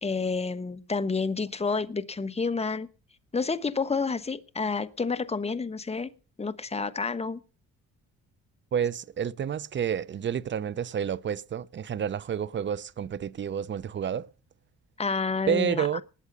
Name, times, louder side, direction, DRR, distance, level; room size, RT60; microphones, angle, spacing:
voice 1, 0.0-2.9 3.3-6.1 6.4-7.4 15.0-15.9, left 4 dB, 20° left, 1.2 m, -29 dB
voice 2, 8.7-14.3 15.5-16.0, right 8 dB, 40° right, 0.7 m, -29 dB
20.0 x 8.0 x 5.4 m
cardioid pair, 90°, 30 cm